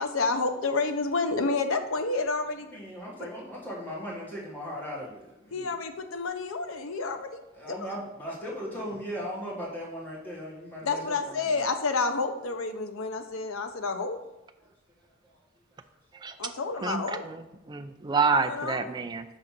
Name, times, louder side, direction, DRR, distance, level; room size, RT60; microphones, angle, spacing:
voice 1, 0.0-2.7 5.5-7.8 10.8-14.2 16.4-17.3 18.4-18.9, left 3 dB, 85° left, 7 dB, 0.7 m, -29 dB
voice 2, 2.7-5.7 7.5-11.6 14.6-14.7 15.2-15.4 16.1-16.5, equal, 10° left, -6 dB, 1.9 m, -38 dB
voice 3, 16.2-16.5 16.8-19.2, right 4 dB, 20° right, 7 dB, 0.4 m, -28 dB
6.0 x 3.9 x 5.9 m, 0.95 s
head